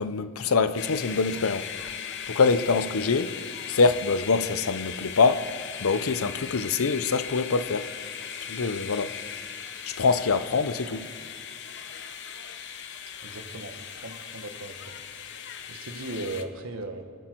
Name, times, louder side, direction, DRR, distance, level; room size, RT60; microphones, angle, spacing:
voice 1, 0.0-1.7 2.3-3.4 3.7-5.4 5.8-7.9 8.5-9.1 10.0-11.1, left 4 dB, 85° left, 0.7 m, -24 dB
sound 1, 0.8-16.4, left 8 dB, 55° left, 0.9 m, -38 dB
voice 2, 13.2-14.7 15.7-17.0, right 2 dB, 70° right, 1.4 m, -37 dB
25.5 x 11.5 x 4.6 m
head